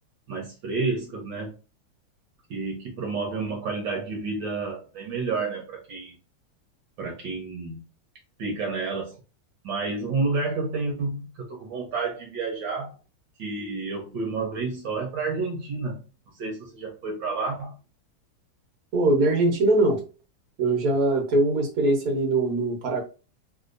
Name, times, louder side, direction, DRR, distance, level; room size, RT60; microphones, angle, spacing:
voice 1, 0.3-1.5 2.5-6.1 7.0-7.8 8.4-9.2 9.6-13.0 13.4-16.0 16.3-17.8, right 3 dB, 65° right, 1.4 m, -30 dB
voice 2, 18.9-20.0 20.6-23.0, right 2 dB, 50° right, 1.3 m, -22 dB
3.5 x 2.7 x 2.5 m
omnidirectional pair, 2.3 m